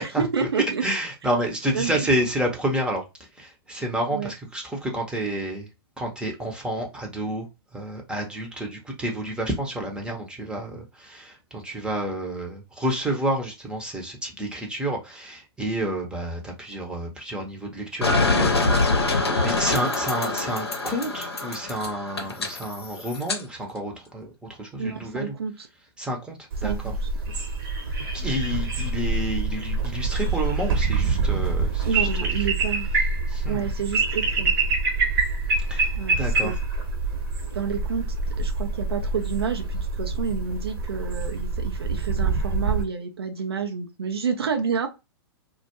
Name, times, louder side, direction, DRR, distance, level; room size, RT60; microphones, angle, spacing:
voice 1, 0.0-0.8 1.7-2.1 4.1-4.3 24.8-25.7 26.6-27.1 31.8-32.9 33.5-34.5 35.9-36.6 37.5-44.9, right 6 dB, 80° right, 0.5 m, -29 dB
voice 2, 0.8-3.0 3.4-5.7 6.0-7.5 7.7-18.5 19.1-24.3 24.6-25.3 26.0-26.9 28.1-32.4 33.3-33.7 35.6-36.5, right 1 dB, 5° right, 0.7 m, -29 dB
sound 1, 18.0-23.4, left 3 dB, 85° left, 0.7 m, -24 dB
sound 2, 26.5-42.8, right 4 dB, 55° right, 0.9 m, -26 dB
2.2 x 2.1 x 2.9 m
figure-of-eight pair, 110°, 13 cm